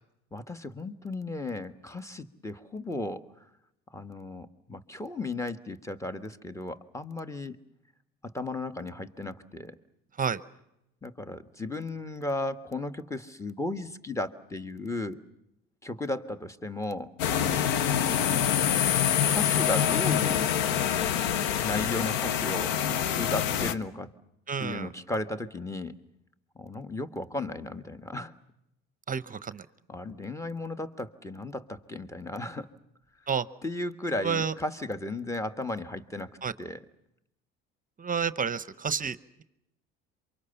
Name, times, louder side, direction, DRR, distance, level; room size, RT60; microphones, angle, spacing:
voice 1, 0.3-3.2 3.9-7.6 8.2-9.8 11.0-15.2 15.8-17.1 18.1-18.6 19.3-20.9 21.6-24.1 24.6-25.9 26.5-28.3 29.9-32.7 33.6-36.3 36.6-36.8, left 2 dB, 10° left, 11 dB, 1.6 m, -35 dB
sound 1, 17.2-23.7, left 9 dB, 80° left, 1.1 m, -26 dB
voice 2, 24.5-24.9 29.1-29.7 33.3-33.5 34.2-34.5 36.4-36.5 38.0-39.4, right 6 dB, 30° right, 16 dB, 0.9 m, -30 dB
27.5 x 24.5 x 7.0 m, 0.84 s
supercardioid pair, 80°, 29 cm